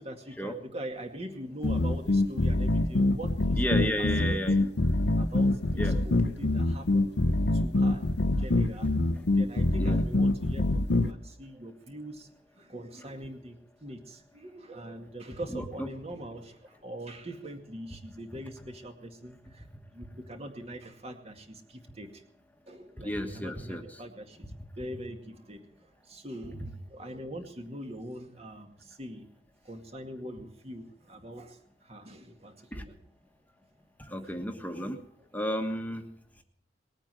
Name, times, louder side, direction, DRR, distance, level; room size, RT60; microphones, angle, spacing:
voice 1, 0.0-4.7 5.2-12.3 12.6-19.7 19.9-22.2 22.7-24.5 24.8-29.3 29.6-33.0 34.2-34.3 35.2-35.3, right 1 dB, 35° right, 4 dB, 2.2 m, -43 dB
sound 1, 1.6-11.1, left 2 dB, 70° left, 0.8 m, -25 dB
voice 2, 3.6-4.6 5.8-5.9 9.8-10.0 15.5-15.9 23.0-23.8 32.7-32.8 34.0-35.0 35.3-36.0, equal, 10° left, 4 dB, 1.4 m, -32 dB
20.5 x 9.0 x 7.6 m, 0.66 s
head